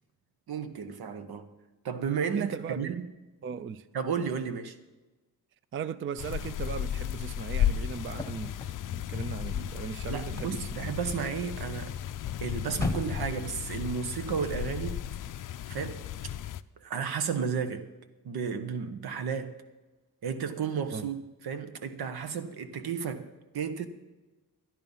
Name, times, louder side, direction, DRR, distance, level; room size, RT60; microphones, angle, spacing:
voice 1, 0.5-1.5 1.8-3.1 3.9-4.8 10.1-11.9 12.4-15.0 15.7-16.0 16.8-17.9 18.2-19.5 20.2-21.2 21.4-23.3 23.5-23.9, right 6 dB, 90° right, 1.1 m, -33 dB
voice 2, 2.3-3.0 3.4-3.9 5.7-10.9 20.9-21.1, right 7 dB, 35° right, 0.4 m, -38 dB
sound 1, 6.2-16.6, left 10 dB, 60° left, 0.5 m, -34 dB
sound 2, 8.0-13.9, left 3 dB, 10° left, 0.9 m, -40 dB
12.5 x 10.5 x 5.5 m
wide cardioid pair, 125°, 37 cm